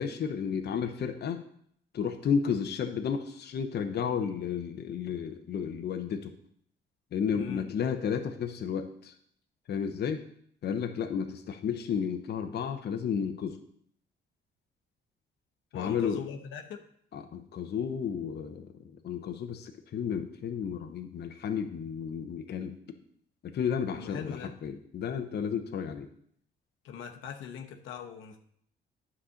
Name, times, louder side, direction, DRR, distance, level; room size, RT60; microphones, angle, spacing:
voice 1, 0.0-1.4 1.9-6.3 7.1-9.1 9.7-10.3 10.6-13.6 15.7-16.2 17.1-18.7 19.0-22.7 23.4-26.1, left 7 dB, 55° left, 6 dB, 0.9 m, -32 dB
voice 2, 7.3-7.7 15.7-16.8 23.9-24.5 26.8-28.4, left 8 dB, 85° left, 3 dB, 1.0 m, -41 dB
9.7 x 4.2 x 6.4 m, 0.66 s
cardioid pair, 90°, 20 cm